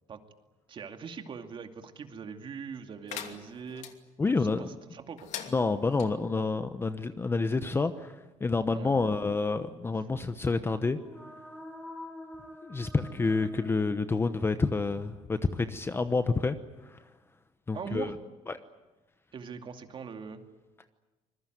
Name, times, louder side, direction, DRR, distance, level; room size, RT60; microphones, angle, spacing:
voice 1, 0.7-3.9 4.4-5.3 8.7-9.0 9.9-10.0 13.2-13.6 17.7-18.2 19.3-20.4, right 6 dB, 40° right, 6 dB, 2.5 m, -42 dB
sound 1, 3.1-3.9 5.2-6.1, left 9 dB, 65° left, 2.7 m, -42 dB
voice 2, 4.2-4.7 5.5-8.1 8.4-11.0 12.6-16.6 16.9-17.0 17.7-18.1 18.5-18.6, left 3 dB, 20° left, 10 dB, 1.0 m, -28 dB
sound 2, 10.8-14.7, left 1 dB, 5° left, 5.7 m, -46 dB
25.5 x 21.5 x 9.4 m, 1.1 s
cardioid pair, 130°, 13 cm